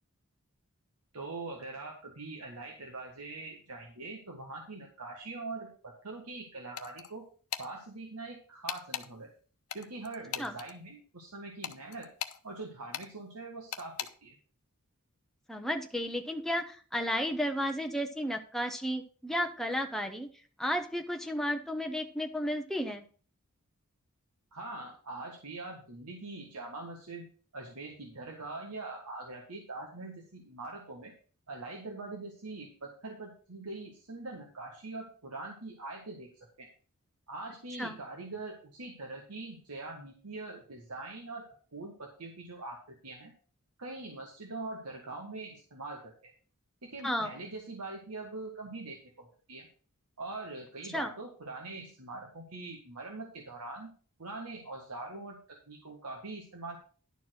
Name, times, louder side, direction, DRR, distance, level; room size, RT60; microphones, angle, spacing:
voice 1, 1.1-7.3 7.6-9.3 9.7-12.1 12.4-14.4 24.5-27.3 27.5-31.1 31.5-36.7 37.3-43.3 43.8-46.3 46.8-49.7 50.2-53.9 54.2-56.8, right 3 dB, 90° right, 1 dB, 1.6 m, -43 dB
sound 1, 6.8-7.1 7.5-7.7 8.7-9.1 9.7-10.7 11.6-12.4 12.9-13.1 13.7-14.1, left 10 dB, 80° left, 0.8 m, -38 dB
voice 2, 15.5-20.3 20.6-23.0 37.8-38.0 47.0-47.4 50.9-51.1, equal, ahead, 4 dB, 0.8 m, -33 dB
11.0 x 4.6 x 6.2 m, 0.41 s
head